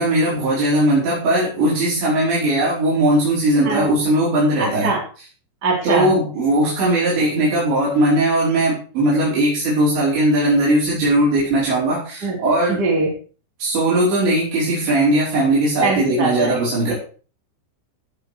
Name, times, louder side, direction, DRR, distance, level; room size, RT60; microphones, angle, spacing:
voice 1, 0.0-4.9 5.8-12.8 13.6-16.9, right 1 dB, 70° right, -7 dB, 7.4 m, -18 dB
voice 2, 4.6-5.0 5.6-6.1 12.2-12.4 12.7-13.1 15.8-16.6, right 3 dB, 20° right, -2 dB, 4.3 m, -21 dB
18.0 x 7.4 x 4.9 m, 0.39 s
omnidirectional pair, 5.3 m